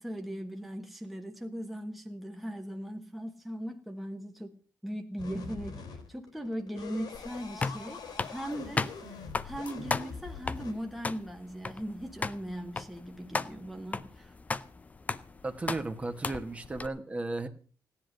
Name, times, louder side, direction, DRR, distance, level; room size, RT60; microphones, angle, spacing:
voice 1, 0.0-4.6 4.8-14.4, equal, ahead, 1.2 m, -39 dB
sound 1, 5.2-10.7, left 5 dB, 75° left, 3.5 m, -43 dB
sound 2, 7.1-16.9, left 4 dB, 20° left, 0.6 m, -36 dB
voice 2, 15.4-17.5, right 2 dB, 20° right, 1.3 m, -35 dB
17.0 x 10.5 x 6.4 m
wide cardioid pair, 165°, 7 cm